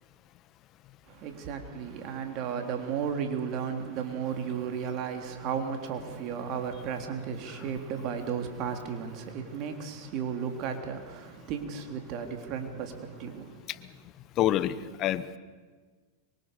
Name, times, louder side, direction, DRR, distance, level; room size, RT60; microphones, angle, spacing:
voice 1, 1.1-13.7, right 7 dB, 50° right, 5 dB, 3.5 m, -34 dB
voice 2, 14.4-15.4, left 12 dB, 45° left, 14 dB, 1.3 m, -28 dB
25.0 x 23.0 x 6.9 m, 1.4 s
hypercardioid pair, 105°, 0 cm